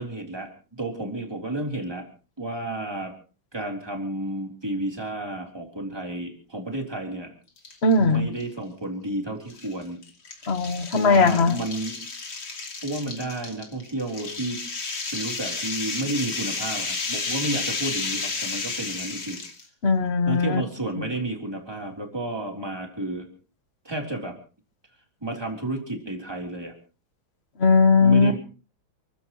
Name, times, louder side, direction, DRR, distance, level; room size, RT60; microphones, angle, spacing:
voice 1, 0.0-2.1 2.4-3.1 3.5-7.3 8.0-10.0 10.9-12.0 12.8-14.6 15.1-19.4 20.3-23.3 23.9-24.4 25.2-26.7 28.0-28.4, right 2 dB, 10° right, 2 dB, 3.6 m, -31 dB
sound 1, 7.6-8.0 8.4-8.5 9.5-19.6, left 4 dB, 85° left, 3.8 m, -32 dB
voice 2, 7.8-8.3 10.5-11.6 19.8-20.6 27.6-28.3, left 4 dB, 35° left, 11 dB, 1.3 m, -19 dB
29.5 x 15.0 x 3.1 m, 0.37 s
omnidirectional pair, 2.2 m